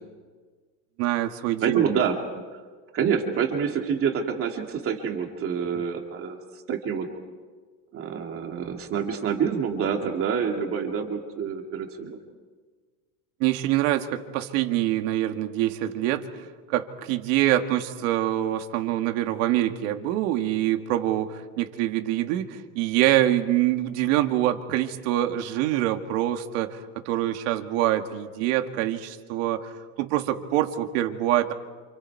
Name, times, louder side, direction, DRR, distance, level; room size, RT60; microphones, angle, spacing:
voice 1, 1.0-1.9 13.4-29.7 30.0-31.5, right 13 dB, 70° right, 6 dB, 2.1 m, -25 dB
voice 2, 1.6-2.2 2.5-2.6 2.9-7.1 7.9-12.2, right 7 dB, 35° right, 2 dB, 2.4 m, -27 dB
29.0 x 28.0 x 4.7 m, 1.4 s
cardioid pair, 155°, 40 cm